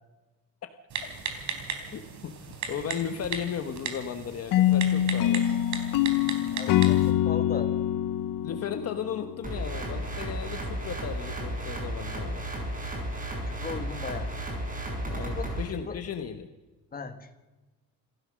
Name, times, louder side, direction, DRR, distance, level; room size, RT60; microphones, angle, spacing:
Typing, 0.9-7.1, right 6 dB, 60° right, 3.9 m, -37 dB
voice 1, 1.9-5.5 8.4-12.4 15.1-16.5, left 8 dB, 45° left, 8 dB, 1.2 m, -36 dB
sound 1, 4.5-9.6, left 12 dB, 75° left, 0.9 m, -25 dB
voice 2, 6.5-7.7 13.5-14.3 15.3-16.0 16.9-17.4, left 5 dB, 25° left, 7 dB, 1.7 m, -38 dB
sound 2, 9.4-15.6, right 1 dB, 25° right, 6.8 m, -33 dB
27.5 x 15.0 x 6.4 m, 1.2 s
cardioid pair, 140°, 34 cm